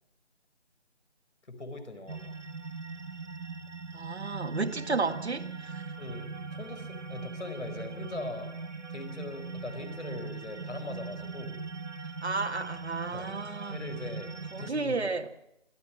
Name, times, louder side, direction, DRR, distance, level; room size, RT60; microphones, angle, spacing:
voice 1, 1.4-2.3 6.0-8.5 8.9-11.6 13.1-13.3 13.7-15.1, left 2 dB, 85° left, 9 dB, 4.9 m, -41 dB
sound 1, 2.1-14.7, right 4 dB, 85° right, 1.3 m, -40 dB
voice 2, 3.9-6.0 12.2-13.8 14.5-15.3, right 3 dB, 65° right, 7 dB, 1.9 m, -32 dB
26.0 x 14.5 x 7.6 m, 0.80 s
figure-of-eight pair, 165°, 35 cm